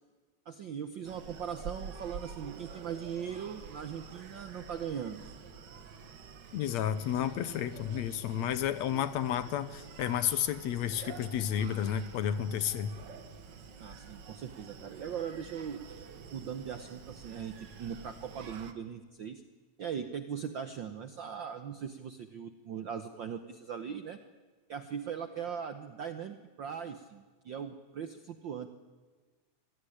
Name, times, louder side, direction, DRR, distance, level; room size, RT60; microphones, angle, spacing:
voice 1, 0.5-5.2 13.8-15.8 16.3-19.4 19.8-24.2 24.7-28.7, right 8 dB, 70° right, 9 dB, 1.1 m, -40 dB
Screaming, 1.0-18.7, right 6 dB, 50° right, 1.6 m, -48 dB
voice 2, 6.5-12.9, left 10 dB, 75° left, 14 dB, 2.1 m, -31 dB
25.0 x 16.5 x 9.9 m, 1.4 s
omnidirectional pair, 3.3 m